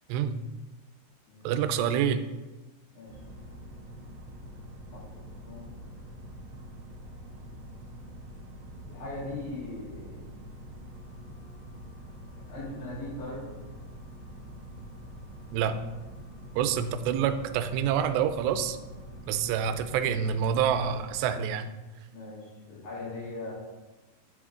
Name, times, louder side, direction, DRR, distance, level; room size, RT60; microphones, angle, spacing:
voice 1, 1.4-2.2 15.5-15.8 16.6-18.8 19.3-21.7, right 8 dB, 85° right, 10 dB, 2.7 m, -27 dB
sound 1, 3.1-21.2, equal, 50° right, 1.4 m, -45 dB
voice 2, 5.3-5.7 8.9-10.2 12.5-13.4 22.1-23.5, left 2 dB, 55° left, -8 dB, 4.9 m, -39 dB
10.0 x 6.2 x 3.7 m, 1.2 s
omnidirectional pair, 4.8 m